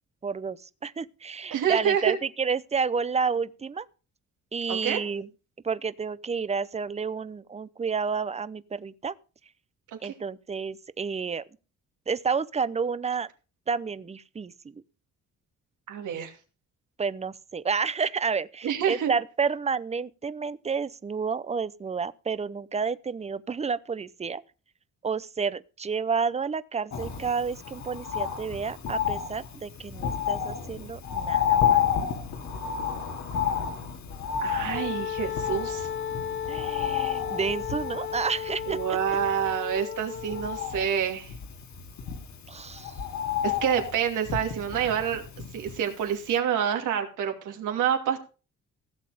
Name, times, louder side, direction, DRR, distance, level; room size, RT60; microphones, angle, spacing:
voice 1, 0.2-3.9 4.5-5.3 5.6-9.1 10.0-11.4 12.1-13.3 13.7-14.8 17.0-24.4 25.0-31.8 36.5-38.8 42.5-42.9, right 5 dB, 20° right, 0.7 m, -30 dB
voice 2, 1.5-2.2 4.7-5.0 9.9-10.1 15.9-16.3 18.6-19.1 34.4-35.9 38.7-41.3 43.4-45.2 45.5-48.2, right 9 dB, 85° right, 2.7 m, -27 dB
Bird, 26.9-46.0 46.3-46.4, left 8 dB, 65° left, 2.4 m, -31 dB
Wind instrument woodwind instrument, 34.7-40.7, left 8 dB, 45° left, 0.6 m, -34 dB
16.0 x 7.5 x 5.0 m
cardioid pair, 90°, 30 cm